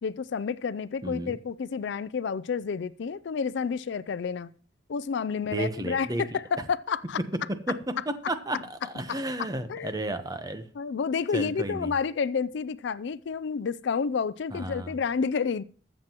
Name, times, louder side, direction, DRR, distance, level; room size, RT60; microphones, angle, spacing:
voice 1, 0.0-4.5 4.9-7.2 9.1-9.2 9.7-9.9 10.8-15.6, left 6 dB, 65° left, 0.4 m, -30 dB
voice 2, 1.0-1.3 5.5-6.4 7.7-10.6 11.3-11.9 14.5-14.9, right 1 dB, 20° right, 0.9 m, -33 dB
21.0 x 7.5 x 3.0 m
head